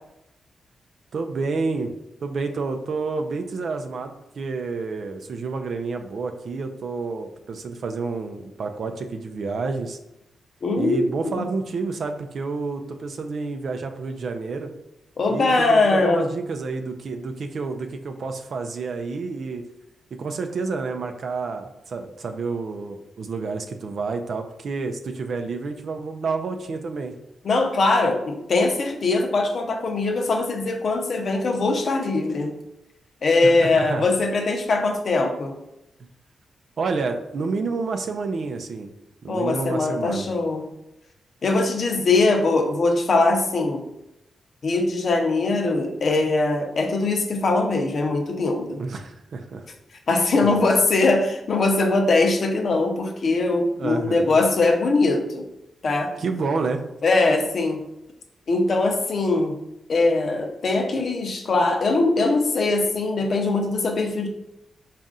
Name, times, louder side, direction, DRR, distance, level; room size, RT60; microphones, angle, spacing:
voice 1, 1.1-1.9 2.2-10.0 10.8-14.7 15.3-19.7 20.2-27.1 33.4-34.1 36.0-36.1 36.8-38.9 39.2-40.3 48.8-49.6 53.8-54.4 56.2-56.8, right 4 dB, 65° right, 6 dB, 0.5 m, -29 dB
voice 2, 10.6-11.4 15.2-16.3 27.4-32.6 33.2-35.6 39.3-40.7 41.4-43.9 44.6-48.8 50.1-55.5 55.8-56.1 57.0-57.8 58.5-59.6 59.9-64.3, left 3 dB, 60° left, 4 dB, 0.7 m, -21 dB
4.1 x 2.5 x 3.7 m, 0.87 s
cardioid pair, 70°, 0 cm